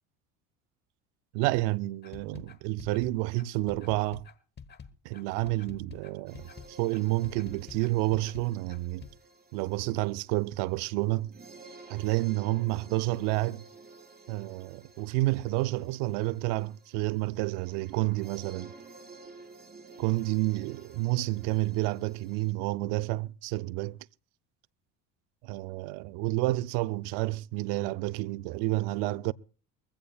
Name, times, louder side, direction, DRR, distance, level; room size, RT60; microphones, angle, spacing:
voice 1, 1.3-4.2 5.0-9.1 9.5-11.3 11.9-13.6 14.3-18.7 20.0-24.0 25.4-29.3, right 19 dB, 80° right, 0.6 m, -30 dB
sound 1, 2.0-9.1, left 6 dB, 30° left, 1.2 m, -47 dB
sound 2, 6.3-22.5, right 3 dB, 25° right, 4.5 m, -52 dB
22.5 x 15.5 x 2.3 m
supercardioid pair, 95°, 36 cm